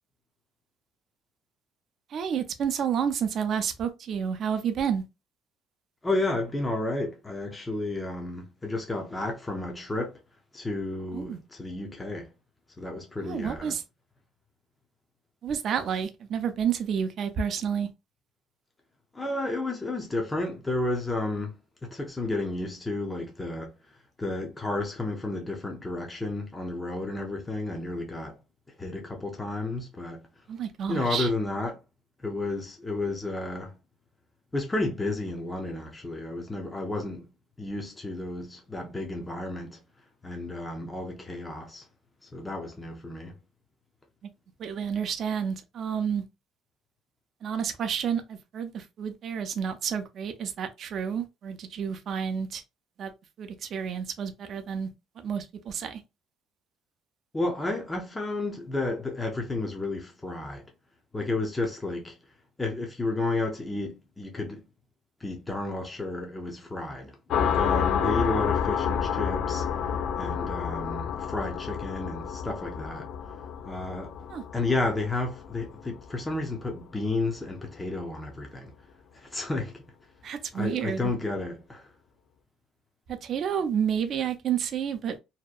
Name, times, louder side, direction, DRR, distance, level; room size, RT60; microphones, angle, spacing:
voice 1, 2.1-5.0 11.1-11.4 13.2-13.8 15.4-17.9 30.5-31.3 44.6-46.2 47.4-52.6 53.0-53.1 53.4-54.9 55.2-56.0 74.3-74.4 80.2-81.1 83.1-85.2, right 7 dB, 50° right, 0.4 m, -30 dB
voice 2, 6.0-10.1 10.5-12.3 12.8-13.7 19.1-23.7 24.2-28.4 28.8-30.2 30.9-31.8 32.2-33.8 34.5-37.3 37.6-39.8 40.2-41.9 42.3-43.3 57.3-60.6 61.1-62.2 62.6-64.6 65.2-69.7 70.1-73.1 73.6-74.2 74.5-78.7 79.1-79.8 80.5-81.9, left 2 dB, 15° left, 0.5 m, -32 dB
sound 1, 67.3-76.6, left 8 dB, 65° left, 0.3 m, -29 dB
2.7 x 2.1 x 2.3 m
cardioid pair, 120°, 0 cm